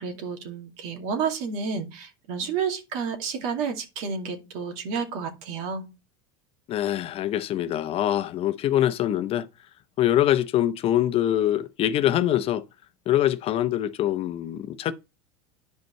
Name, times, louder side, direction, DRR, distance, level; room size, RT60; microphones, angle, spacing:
voice 1, 0.0-5.9, right 6 dB, 60° right, 2.3 m, -30 dB
voice 2, 6.7-9.5 10.0-12.6 13.1-14.9, left 12 dB, 45° left, 0.8 m, -24 dB
10.5 x 5.2 x 3.2 m
supercardioid pair, 105°, 14 cm